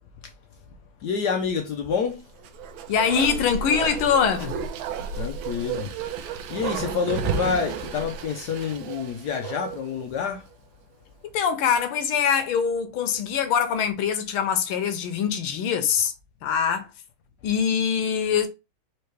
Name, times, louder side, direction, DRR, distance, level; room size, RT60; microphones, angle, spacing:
voice 1, 1.0-2.2 5.1-5.9 6.5-10.4, left 6 dB, 70° left, 1.0 m, -28 dB
Bark, 2.4-10.0 10.3-10.4, right 6 dB, 75° right, 1.4 m, -32 dB
voice 2, 2.9-4.6 6.5-6.9 11.2-16.1 16.4-16.9 17.4-18.5, left 7 dB, 85° left, 1.6 m, -23 dB
4.5 x 2.9 x 3.1 m
omnidirectional pair, 2.3 m